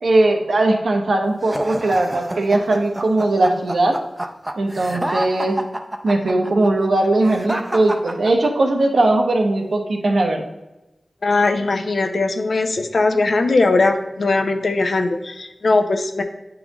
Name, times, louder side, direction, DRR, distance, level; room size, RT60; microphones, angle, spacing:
voice 1, 0.0-4.0 4.6-5.6 6.0-10.4, right 2 dB, 80° right, 2 dB, 0.9 m, -19 dB
sound 1, 1.4-8.8, right 1 dB, 20° right, 0.5 m, -29 dB
voice 2, 11.2-16.2, left 3 dB, 70° left, 6 dB, 0.6 m, -19 dB
8.5 x 3.8 x 3.0 m, 1.0 s
wide cardioid pair, 70°, 0 cm